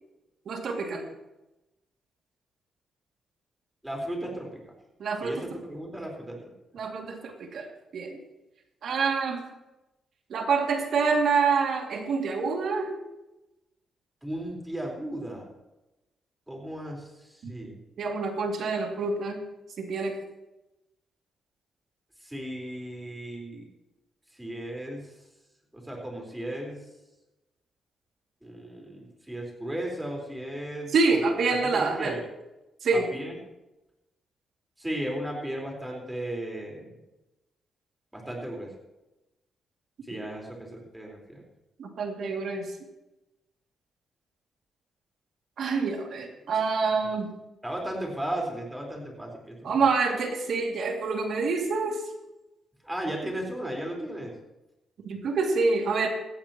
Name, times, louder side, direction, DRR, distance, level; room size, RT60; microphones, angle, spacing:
voice 1, 0.5-1.1 5.0-5.5 6.7-7.7 7.9-8.2 8.8-9.4 10.3-12.9 17.4-17.5 18.0-19.4 19.8-20.2 30.9-32.1 32.8-33.1 41.8-42.7 45.6-47.3 49.6-52.0 55.0-56.1, right 4 dB, 70° right, 2 dB, 2.4 m, -26 dB
voice 2, 3.8-4.6 5.2-6.4 14.2-15.5 16.5-17.8 22.2-23.7 24.4-25.0 25.7-26.8 28.4-31.2 31.7-32.2 32.9-33.4 34.8-37.0 38.1-38.7 40.1-41.4 47.6-49.7 52.8-54.4, right 1 dB, 10° right, 0 dB, 4.3 m, -35 dB
17.5 x 14.5 x 3.0 m, 0.98 s
cardioid pair, 100°, 0 cm